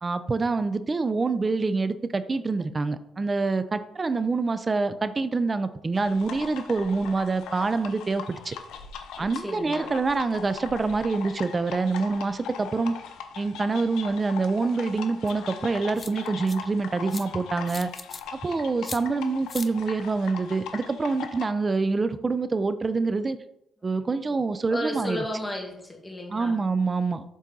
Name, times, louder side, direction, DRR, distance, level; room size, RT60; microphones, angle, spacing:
voice 1, 0.0-8.6 9.2-12.9 13.4-17.9 18.3-23.4 23.8-25.2 26.3-27.2, right 3 dB, 30° right, 12 dB, 0.5 m, -26 dB
sound 1, 5.9-21.4, left 7 dB, 85° left, 0.7 m, -40 dB
voice 2, 9.2-9.9 24.7-26.6, left 1 dB, 10° left, 0 dB, 1.7 m, -33 dB
sound 2, 15.3-15.4 16.0-16.6 17.1-17.3 17.7-18.2 18.8-19.0 19.5-19.7, left 4 dB, 35° left, 0.5 m, -38 dB
7.5 x 4.1 x 3.9 m, 0.82 s
cardioid pair, 90°, 0 cm